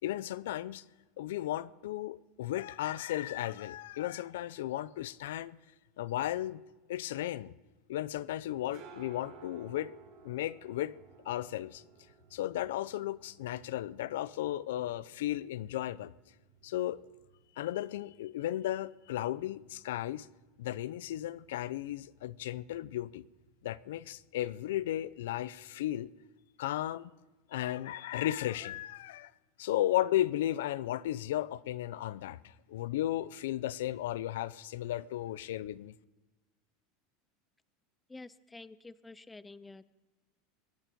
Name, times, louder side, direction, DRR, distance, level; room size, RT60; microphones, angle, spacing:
voice 1, 0.0-0.8 1.2-5.6 6.0-6.6 6.9-7.5 7.9-9.9 10.2-11.0 11.2-11.8 12.3-16.1 16.6-17.0 17.6-20.3 20.6-23.2 23.6-26.1 26.6-27.1 27.5-29.3 29.6-36.0, left 13 dB, 90° left, 0.5 m, -35 dB
sound 1, 8.3-25.8, right 5 dB, 55° right, 3.2 m, -60 dB
voice 2, 38.1-39.9, left 3 dB, 10° left, 0.4 m, -49 dB
22.5 x 9.0 x 5.2 m
supercardioid pair, 155°, 0 cm